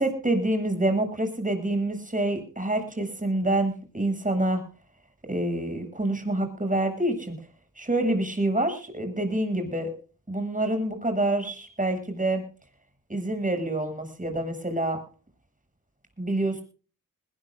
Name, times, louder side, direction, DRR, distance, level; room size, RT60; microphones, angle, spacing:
voice 1, 0.0-4.6 5.3-7.3 7.8-9.9 10.3-12.4 13.1-15.0 16.2-16.6, right 1 dB, 25° right, 6 dB, 7.9 m, -27 dB
20.5 x 20.0 x 2.6 m, 0.38 s
cardioid pair, 55°, 33 cm